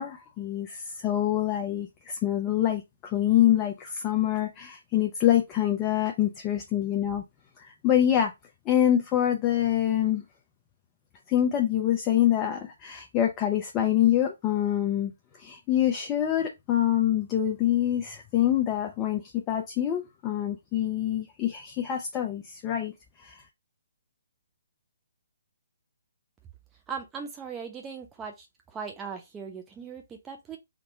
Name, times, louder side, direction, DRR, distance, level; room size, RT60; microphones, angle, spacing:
voice 1, 0.0-7.2 7.6-8.3 8.7-10.2 11.3-15.1 15.4-22.9 23.2-23.4, left 11 dB, 25° left, 0.6 m, -25 dB
voice 2, 26.9-30.6, right 6 dB, 15° right, 0.8 m, -39 dB
3.7 x 2.2 x 3.9 m
hypercardioid pair, 140°, 0 cm